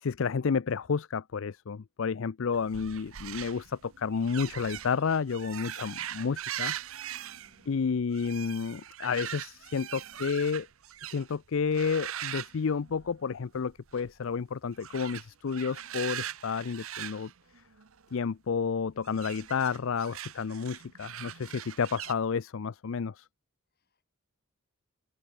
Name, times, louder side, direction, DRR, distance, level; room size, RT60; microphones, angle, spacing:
voice 1, 0.0-6.7 7.7-10.7 11.0-17.3 18.1-23.3, left 5 dB, 60° left, 0.4 m, -31 dB
sound 1, 2.5-11.4 11.7-13.4 13.7-14.1 14.7-18.1 19.0-22.1, right 11 dB, 70° right, 0.8 m, -41 dB
voice 2, 7.1-7.8 9.7-10.3 23.7-24.2, left 1 dB, 45° left, 4.3 m, -65 dB
open air
head